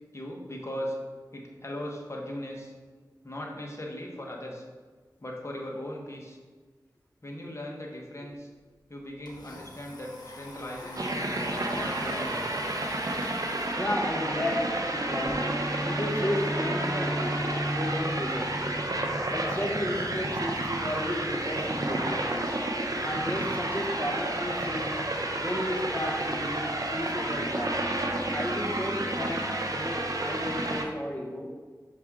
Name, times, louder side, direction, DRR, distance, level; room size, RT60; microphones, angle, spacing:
voice 1, 0.1-1.0 1.3-2.7 3.2-4.6 5.2-6.4 7.2-8.5 8.9-12.7, equal, 40° left, -1 dB, 1.3 m, -38 dB
Domestic sounds home sounds, 8.3-8.4 8.7-15.3, left 1 dB, 70° left, 1.3 m, -46 dB
sound 1, 10.9-30.8, right 1 dB, 55° right, 0.8 m, -31 dB
voice 2, 13.8-18.9 19.3-22.6 23.0-25.0 25.4-27.9 28.3-31.6, left 1 dB, 20° left, 1 dB, 1.1 m, -33 dB
Bowed string instrument, 15.1-19.5, equal, 5° right, 0.5 m, -35 dB
6.0 x 4.7 x 3.7 m, 1.5 s
cardioid pair, 40°, 7 cm